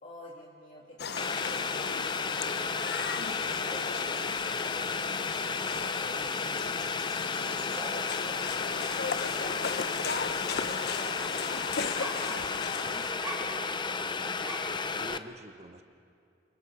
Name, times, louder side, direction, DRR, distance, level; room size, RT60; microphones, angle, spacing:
voice 1, 0.0-3.0 3.4-5.6 6.0-7.0 7.5-11.7 12.5-14.0, left 1 dB, 45° left, -5 dB, 2.8 m, -49 dB
sound 1, 1.0-13.1, left 5 dB, 60° left, 0.7 m, -37 dB
Boiling, 1.2-15.2, left 4 dB, 25° left, 0.6 m, -33 dB
sound 2, 7.7-10.0 10.2-14.9, right 1 dB, 15° right, 5.4 m, -44 dB
voice 2, 14.0-15.8, right 2 dB, 35° right, 7 dB, 1.0 m, -48 dB
29.0 x 28.0 x 4.9 m, 2.5 s
head